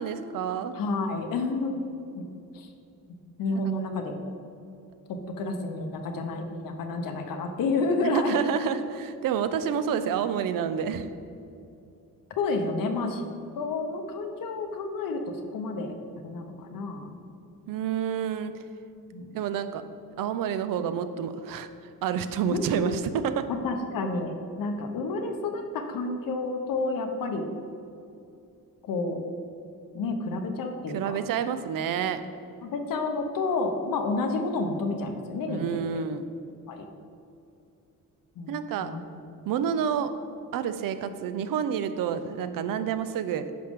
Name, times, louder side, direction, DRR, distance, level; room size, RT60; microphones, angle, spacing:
voice 1, 0.0-0.8 8.0-11.1 17.7-18.6 19.3-19.8 20.2-21.7 22.0-23.5 30.9-32.2 35.5-36.3 38.5-38.9 39.5-40.1 40.5-43.5, right 8 dB, 85° right, 11 dB, 0.6 m, -29 dB
voice 2, 0.7-1.9 2.2-2.3 2.5-2.7 3.1-4.3 5.4-8.5 12.4-13.2 13.6-15.2 15.5-15.9 16.2-17.2 19.1-19.3 22.4-22.9 23.5-27.5 28.8-29.2 29.9-31.2 32.6-35.8 36.7-36.8 38.4-38.5 38.8-39.2, left 3 dB, 85° left, 5 dB, 1.0 m, -30 dB
10.0 x 6.5 x 3.6 m, 2.6 s
wide cardioid pair, 165°, 33 cm